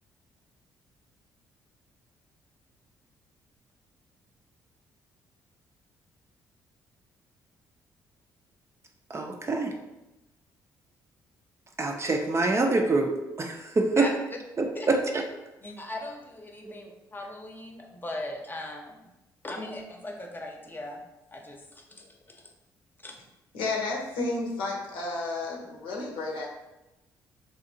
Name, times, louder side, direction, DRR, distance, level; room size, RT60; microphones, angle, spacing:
voice 1, 9.1-9.7 11.8-14.1 14.6-15.2 16.6-16.8, right 3 dB, 30° right, 3 dB, 0.5 m, -26 dB
voice 2, 15.6-19.0 19.4-21.0 21.3-22.5 23.0-23.2, left 1 dB, 20° left, 2 dB, 0.8 m, -39 dB
voice 3, 23.5-26.5, left 3 dB, 70° left, -2 dB, 0.8 m, -31 dB
3.4 x 2.6 x 2.6 m, 0.96 s
hypercardioid pair, 50°, 9 cm